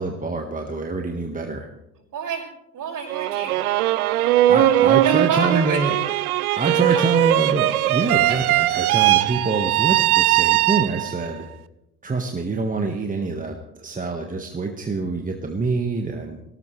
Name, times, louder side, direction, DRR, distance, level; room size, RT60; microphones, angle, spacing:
voice 1, 0.0-1.7 4.5-6.0 6.6-11.5 12.0-16.4, right 3 dB, 20° right, 3 dB, 1.7 m, -26 dB
voice 2, 2.1-2.4 2.7-3.6 5.0-6.0 6.6-7.1 8.3-8.4, right 6 dB, 45° right, 0 dB, 6.1 m, -28 dB
sound 1, 3.1-11.3, right 14 dB, 75° right, 0.7 m, -20 dB
22.5 x 18.5 x 3.3 m, 0.85 s
figure-of-eight pair, 65°, 45 cm